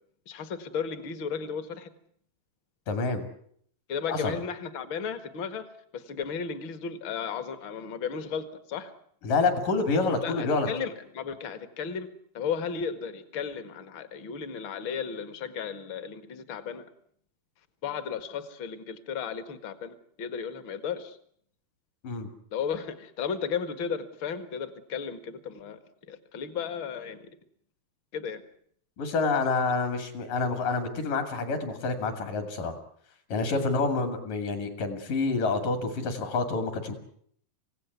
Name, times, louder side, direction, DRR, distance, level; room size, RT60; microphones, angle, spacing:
voice 1, 0.3-1.9 3.9-8.9 10.2-12.1 12.3-16.8 17.8-21.2 22.5-25.8 26.1-27.3 28.1-28.4 33.6-33.7, left 6 dB, 45° left, 11 dB, 1.9 m, -34 dB
voice 2, 2.9-3.3 4.1-4.4 9.2-10.7 22.0-22.3 29.0-32.7 33.3-36.9, left 3 dB, 60° left, 7 dB, 4.0 m, -28 dB
27.0 x 17.0 x 9.5 m, 0.66 s
omnidirectional pair, 4.3 m